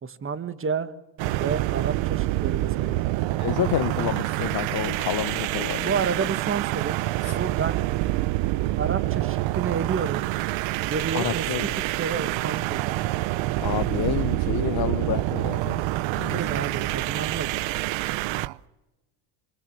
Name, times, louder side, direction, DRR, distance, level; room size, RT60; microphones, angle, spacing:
voice 1, 0.0-0.9 1.3-3.1 5.8-7.0 7.3-7.8 8.7-10.3 10.8-13.1 16.0-17.5, right 6 dB, 25° right, 1.6 m, -30 dB
sound 1, 1.2-18.5, right 17 dB, 65° right, 0.8 m, -27 dB
voice 2, 3.4-5.9 11.1-11.6 13.6-15.8 16.2-16.4, left 12 dB, 50° left, 1.1 m, -29 dB
26.5 x 25.5 x 7.4 m
cardioid pair, 110°, 48 cm